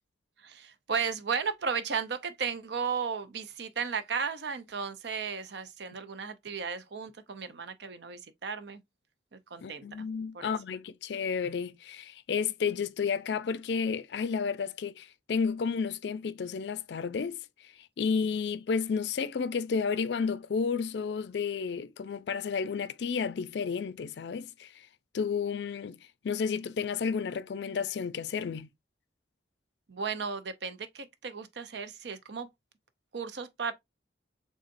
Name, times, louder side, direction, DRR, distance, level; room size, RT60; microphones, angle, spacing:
voice 1, 0.4-8.8 9.3-10.1 10.3-10.5 29.9-32.5 33.1-33.7, right 6 dB, 65° right, 0.6 m, -35 dB
voice 2, 9.6-17.4 18.0-24.7 25.1-26.0 26.2-28.7, left 5 dB, 65° left, 0.4 m, -31 dB
3.9 x 3.6 x 2.5 m
head